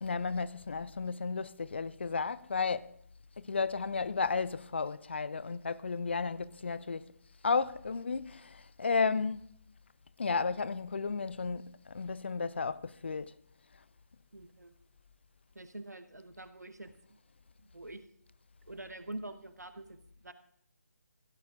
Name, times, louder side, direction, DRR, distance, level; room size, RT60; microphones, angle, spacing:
voice 1, 0.0-2.9 3.4-7.1 7.4-9.5 10.2-13.3, left 4 dB, 40° left, 0.4 m, -33 dB
voice 2, 14.3-14.8 15.5-17.2 17.6-18.0 18.7-20.3, right 2 dB, 75° right, 1.1 m, -46 dB
15.0 x 14.0 x 2.5 m
figure-of-eight pair, 150°, 9 cm